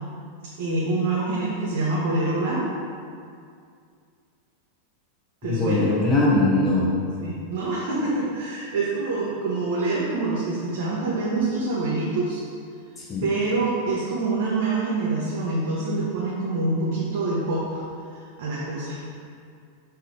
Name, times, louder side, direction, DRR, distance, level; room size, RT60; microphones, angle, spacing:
voice 1, 0.6-2.7 5.4-5.9 7.2-12.4 13.2-17.8 18.1-19.1, right 3 dB, 55° right, -7 dB, 1.3 m, -26 dB
voice 2, 5.4-6.9 13.0-13.3, left 2 dB, 15° left, -5 dB, 1.0 m, -21 dB
7.1 x 4.2 x 4.0 m, 2.3 s
supercardioid pair, 160°, 0 cm